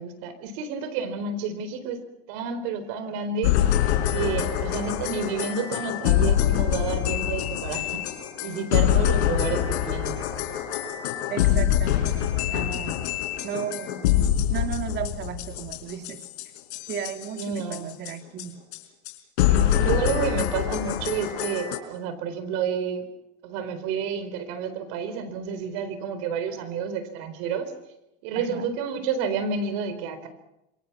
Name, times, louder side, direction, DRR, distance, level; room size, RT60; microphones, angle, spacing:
voice 1, 0.0-2.0 2.3-3.6 4.1-8.0 8.4-10.2 17.4-17.9 19.7-23.0 23.4-27.7 28.2-30.3, right 6 dB, 60° right, 11 dB, 4.2 m, -30 dB
sound 1, 3.4-18.1 18.4-18.5 18.7-18.8 19.1-19.2 19.4-21.8, left 11 dB, 85° left, 4.1 m, -25 dB
voice 2, 11.3-13.1 13.4-14.1 14.5-16.2 16.9-18.5 28.4-28.7, right 8 dB, 30° right, 7 dB, 2.1 m, -34 dB
27.0 x 23.5 x 5.9 m, 0.91 s
supercardioid pair, 150°, 32 cm